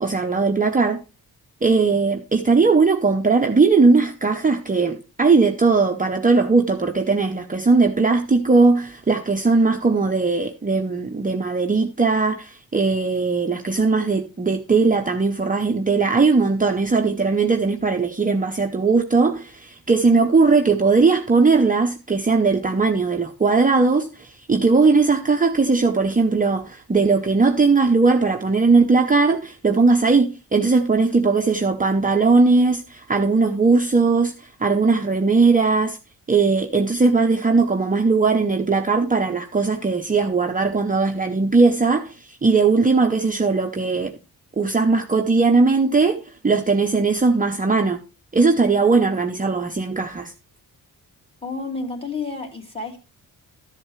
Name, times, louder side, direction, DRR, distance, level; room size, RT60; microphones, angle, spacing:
voice 1, 0.0-1.0 1.6-36.0 36.3-44.1 44.6-48.0 48.3-50.3, right 4 dB, 20° right, 0.7 m, -19 dB
voice 2, 51.4-53.0, left 3 dB, 15° left, 2.8 m, -30 dB
13.0 x 7.8 x 3.2 m
cardioid pair, 100°, 38 cm